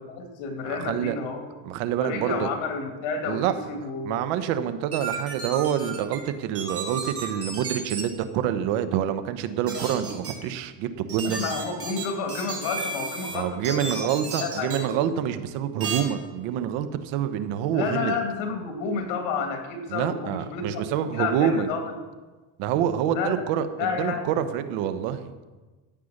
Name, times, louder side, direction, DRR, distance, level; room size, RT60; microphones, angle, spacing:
voice 1, 0.1-1.4 2.0-4.2 11.2-15.0 17.7-21.9 23.1-23.4 23.8-24.3, left 5 dB, 80° left, 4 dB, 2.9 m, -30 dB
voice 2, 0.7-1.1 1.6-2.5 3.3-3.5 4.0-11.4 13.3-18.2 19.9-21.7 22.6-25.3, right 9 dB, 80° right, 11 dB, 1.2 m, -27 dB
sound 1, 4.9-6.2 6.6-8.0 9.7-10.3 11.1-13.4 13.6-14.8 15.8-16.0, right 5 dB, 30° right, 3.8 m, -33 dB
14.0 x 8.6 x 6.6 m, 1.3 s
cardioid pair, 125°, 45 cm